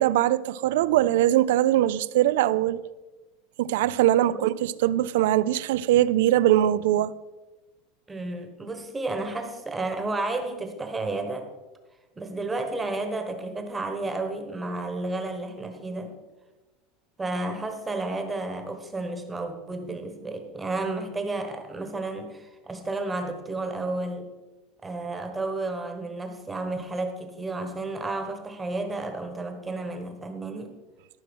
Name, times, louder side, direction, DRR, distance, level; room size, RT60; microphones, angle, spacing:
voice 1, 0.0-2.8 3.6-7.1, right 13 dB, 75° right, 0.4 m, -22 dB
voice 2, 8.1-11.5 12.2-16.1 17.2-24.3 24.8-30.8, right 2 dB, 10° right, 1.1 m, -32 dB
13.5 x 6.1 x 6.1 m
supercardioid pair, 170°, 0 cm